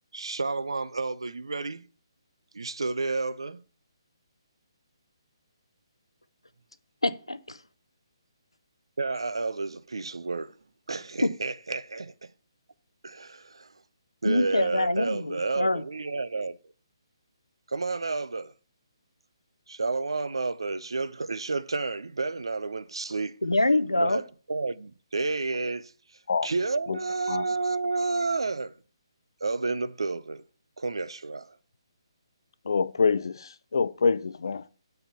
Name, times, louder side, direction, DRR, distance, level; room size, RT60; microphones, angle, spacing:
voice 1, 0.1-1.8 2.5-3.6 9.0-10.5 10.9-12.3 13.0-13.7 14.2-16.6 17.7-18.5 19.7-23.4 23.9-25.9 26.4-28.7 29.4-30.4 30.8-31.5, right 3 dB, 70° right, 0.6 m, -30 dB
voice 2, 7.0-7.6 11.2-11.3 14.2-15.8 23.4-24.2, left 1 dB, 85° left, 0.8 m, -25 dB
voice 3, 32.6-34.7, left 5 dB, 60° left, 0.5 m, -26 dB
5.6 x 5.6 x 6.9 m
figure-of-eight pair, 140°, 3 cm